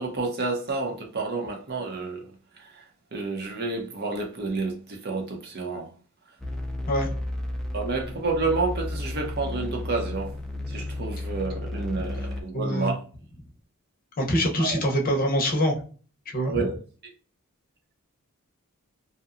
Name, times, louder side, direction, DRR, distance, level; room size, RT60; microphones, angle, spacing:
voice 1, 0.0-2.3 2.6-2.8 3.1-5.9 7.7-10.4 10.7-13.0 14.6-14.9 16.4-16.7, right 3 dB, 45° right, 0.7 m, -30 dB
sound 1, 6.4-12.4, left 1 dB, ahead, 0.3 m, -33 dB
voice 2, 12.5-12.9 14.2-15.8 16.3-16.6, equal, 40° left, 0.7 m, -24 dB
2.7 x 2.1 x 2.4 m
head